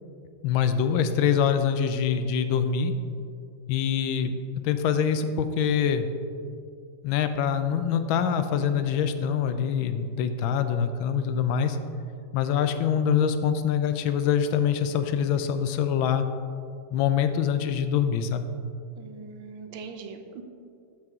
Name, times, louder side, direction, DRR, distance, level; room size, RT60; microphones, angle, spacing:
voice 1, 0.4-2.9 3.7-4.4 4.6-6.1 7.0-11.8 12.3-16.2 16.9-18.5, left 8 dB, 85° left, 9 dB, 1.4 m, -24 dB
voice 2, 19.0-20.4, right 5 dB, 85° right, 5 dB, 1.5 m, -41 dB
12.5 x 4.8 x 3.6 m, 2.4 s
omnidirectional pair, 2.1 m